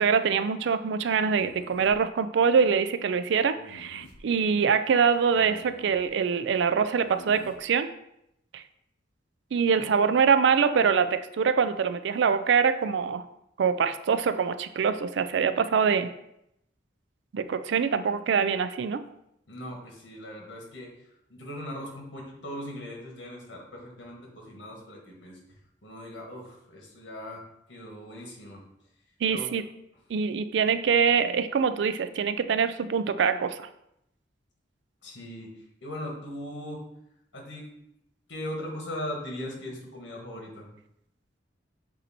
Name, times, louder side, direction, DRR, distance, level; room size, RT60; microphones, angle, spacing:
voice 1, 0.0-7.9 8.5-8.6 9.5-13.2 13.6-16.1 17.3-19.0 29.2-29.6 30.1-33.6, right 6 dB, 70° right, 12 dB, 0.4 m, -24 dB
sound 1, 1.3-2.0 3.6-4.2 5.4-6.1 7.0-7.6, left 2 dB, 90° left, 0.7 m, -49 dB
voice 2, 19.5-20.9 21.3-25.4 25.8-27.4 27.7-28.6 29.3-29.5 35.0-35.5 35.8-36.8 37.3-37.7 38.3-40.7, left 1 dB, 70° left, 0 dB, 1.7 m, -39 dB
8.1 x 2.8 x 4.2 m, 0.80 s
head